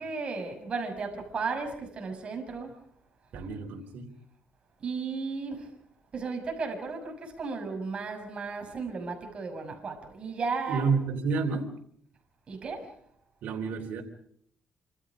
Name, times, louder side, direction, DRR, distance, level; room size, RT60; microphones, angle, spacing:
voice 1, 0.0-2.7 4.8-5.7 6.1-10.9 12.5-12.9, right 4 dB, 40° right, 4 dB, 6.3 m, -34 dB
voice 2, 3.3-4.1 10.7-11.7 13.4-14.0, right 5 dB, 80° right, 2 dB, 3.6 m, -29 dB
27.0 x 26.5 x 5.1 m, 0.65 s
cardioid pair, 120°, 3 cm